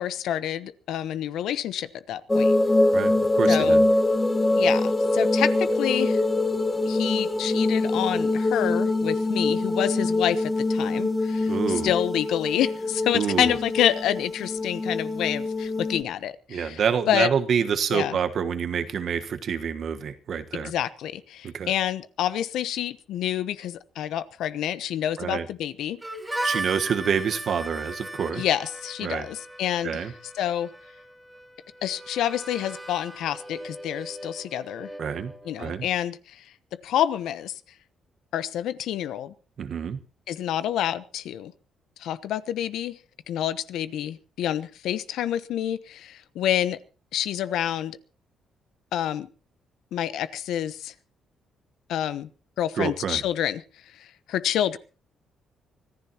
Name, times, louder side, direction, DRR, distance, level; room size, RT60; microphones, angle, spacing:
voice 1, 0.0-2.6 3.5-3.8 4.6-6.2 6.9-16.8 17.1-17.3 17.9-18.2 20.5-26.0 26.3-26.5 28.3-30.1 30.3-30.7 31.8-34.9 35.4-36.5 36.8-37.5 38.3-39.3 40.3-41.5 42.0-43.0 43.3-46.8 47.1-48.0 48.9-49.3 49.9-50.9 51.9-52.3 52.6-53.6 53.9-54.8, left 11 dB, 80° left, 14 dB, 0.9 m, -28 dB
sound 1, 2.3-16.0, left 2 dB, 15° left, 1.5 m, -24 dB
voice 2, 2.9-3.8 11.5-11.9 13.1-13.5 16.5-20.7 21.4-21.7 25.2-25.5 26.4-28.4 29.0-29.3 29.8-30.1 35.0-35.3 35.6-35.9 39.6-40.0 52.8-53.2, right 7 dB, 60° right, 9 dB, 1.4 m, -27 dB
Harmonica, 26.0-35.6, right 1 dB, 10° right, 2.9 m, -37 dB
25.0 x 14.5 x 3.0 m, 0.35 s
cardioid pair, 90°, 0 cm